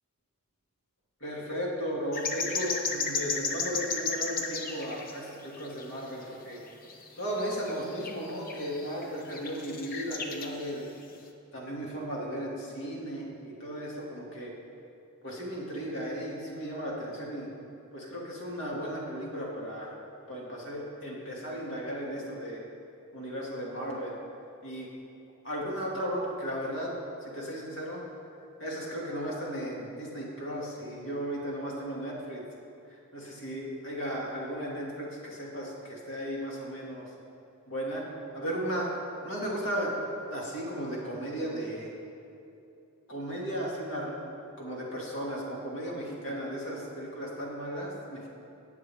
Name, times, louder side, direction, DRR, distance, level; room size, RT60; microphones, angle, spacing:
voice 1, 1.2-6.6 7.2-10.9 11.5-14.5 15.2-17.5 17.9-19.9 20.3-22.6 23.1-24.2 24.6-24.9 25.4-26.9 27.2-28.0 28.6-32.4 32.9-37.1 37.7-38.0 38.3-39.0 39.2-39.9 40.3-41.9 43.1-48.3, equal, 60° left, -4 dB, 2.3 m, -35 dB
sound 1, 2.1-5.2 5.4-6.2 6.6-10.6 11.0-11.1, left 4 dB, 40° left, 0.7 m, -34 dB
18.5 x 6.6 x 3.5 m, 2.8 s
head